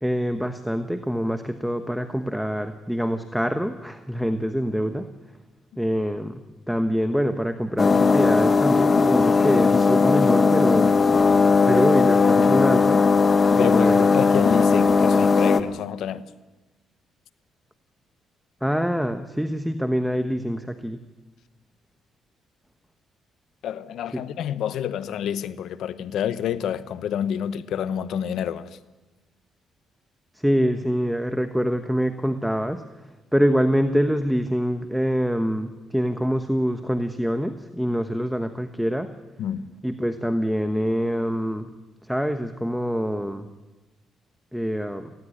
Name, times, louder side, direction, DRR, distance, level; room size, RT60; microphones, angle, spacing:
voice 1, 0.0-5.1 5.8-10.9 11.7-13.1 13.5-14.1 18.6-21.0 24.1-24.2 30.3-32.8 33.3-39.1 39.8-41.7 42.0-43.5 44.5-45.1, equal, ahead, 1.1 m, -25 dB
sound 1, 7.8-15.6, left 4 dB, 35° left, 1.3 m, -18 dB
voice 2, 13.6-16.2 23.6-28.8 39.4-39.7, left 9 dB, 75° left, 1.0 m, -28 dB
18.5 x 16.0 x 9.9 m
cardioid pair, 90°, 0 cm